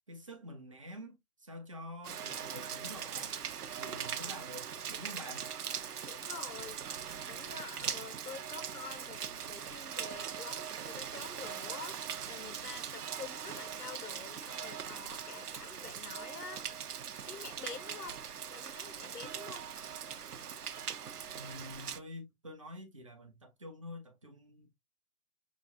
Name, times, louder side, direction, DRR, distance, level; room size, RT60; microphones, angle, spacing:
voice 1, 0.1-3.4 3.8-5.5 21.3-24.7, left 1 dB, 25° right, 0.5 m, -47 dB
Rain, 2.0-22.0, right 8 dB, 80° right, 0.7 m, -41 dB
voice 2, 6.1-7.0 7.3-16.9 17.3-18.2 18.5-19.7, left 6 dB, 85° left, 1.1 m, -48 dB
5.9 x 2.5 x 2.6 m
figure-of-eight pair, 145°, 45 cm